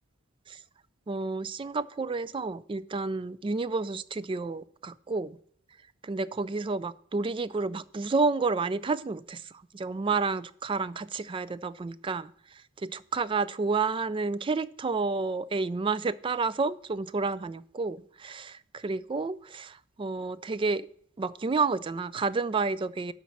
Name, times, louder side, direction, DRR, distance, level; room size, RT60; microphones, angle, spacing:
voice 1, 1.1-5.4 6.0-20.9 21.2-23.1, right 4 dB, 25° right, 17 dB, 0.3 m, -30 dB
11.5 x 4.2 x 7.2 m, 0.62 s
head